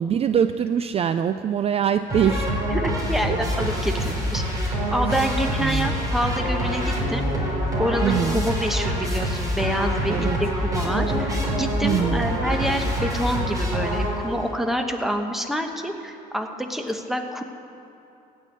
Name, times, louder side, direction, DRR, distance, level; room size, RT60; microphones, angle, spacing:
voice 1, 0.0-2.5 5.6-5.9 8.0-8.4 10.1-10.4 11.8-12.2, right 8 dB, 35° right, 10 dB, 0.4 m, -23 dB
sound 1, 2.1-14.5, equal, 20° right, 3.8 m, -25 dB
voice 2, 2.7-7.2 7.8-17.4, equal, ahead, 5 dB, 1.1 m, -27 dB
15.5 x 5.5 x 9.3 m, 2.8 s
cardioid pair, 110°, 17 cm